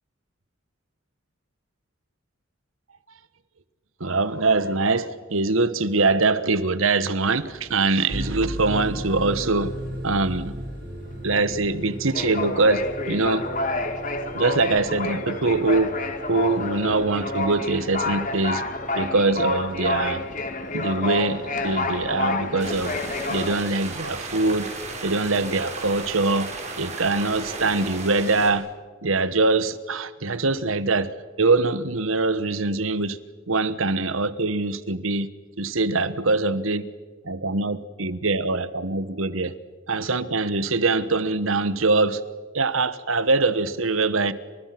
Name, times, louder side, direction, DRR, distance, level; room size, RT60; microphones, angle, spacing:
voice 1, 4.0-9.7 10.0-10.5 11.2-13.5 14.3-16.0 16.3-18.6 18.9-20.2 20.7-23.0 23.3-24.7 25.0-26.5 26.8-28.6 29.0-33.2 33.5-35.3 35.6-36.9 37.2-39.5 39.9-42.2 42.5-44.3, right 3 dB, 85° right, 14 dB, 1.3 m, -23 dB
sound 1, 7.3-8.5 8.8-9.0 9.3-23.6, left 2 dB, 40° left, 1.9 m, -29 dB
sound 2, 8.1-26.7, right 1 dB, 50° right, 5.4 m, -38 dB
sound 3, 22.6-28.5, right 3 dB, 35° right, 4.7 m, -35 dB
30.0 x 27.0 x 6.0 m, 1.4 s
head